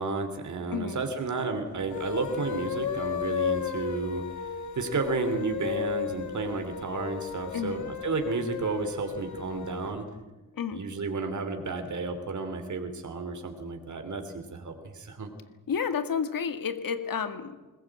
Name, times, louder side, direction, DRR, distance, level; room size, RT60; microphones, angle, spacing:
voice 1, 0.0-10.1 10.7-15.3, right 4 dB, 60° right, 6 dB, 3.0 m, -32 dB
sound 1, 1.8-10.0, left 8 dB, 60° left, 1.5 m, -34 dB
voice 2, 15.7-17.6, left 6 dB, 80° left, 9 dB, 2.1 m, -30 dB
21.5 x 20.5 x 8.8 m, 1.1 s
wide cardioid pair, 150°, 33 cm